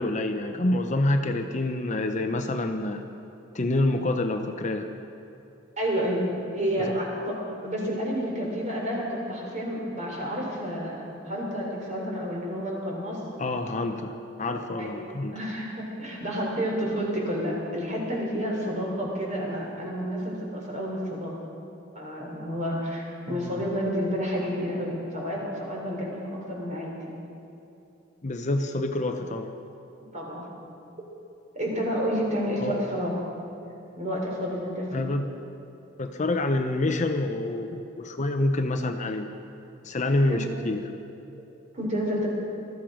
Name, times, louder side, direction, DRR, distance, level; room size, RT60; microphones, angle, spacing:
voice 1, 0.0-3.0 3.5-4.9 13.4-15.3 23.3-23.6 28.2-29.5 32.6-32.8 34.9-35.3 36.0-39.3 39.8-40.8, left 2 dB, 35° left, 6 dB, 0.7 m, -27 dB
voice 2, 5.8-13.2 14.8-15.0 15.3-21.3 21.9-26.9 30.1-30.4 31.6-33.2 34.0-35.1 40.3-40.4 41.7-42.3, equal, 35° right, -2 dB, 3.9 m, -30 dB
20.0 x 13.5 x 5.0 m, 2.8 s
head